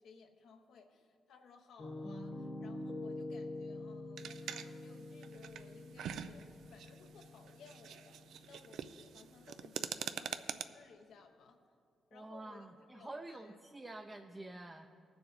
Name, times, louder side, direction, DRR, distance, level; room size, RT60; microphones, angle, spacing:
voice 1, 0.0-11.6 12.1-13.5, left 5 dB, 80° left, 4 dB, 0.8 m, -60 dB
Piano, 1.8-9.6, left 2 dB, 35° left, 1.1 m, -46 dB
sound 1, 4.2-10.6, right 8 dB, 80° right, 0.4 m, -44 dB
voice 2, 12.1-14.9, right 2 dB, 15° right, 4 dB, 0.5 m, -48 dB
19.0 x 6.9 x 4.0 m, 2.3 s
cardioid pair, 110°, 0 cm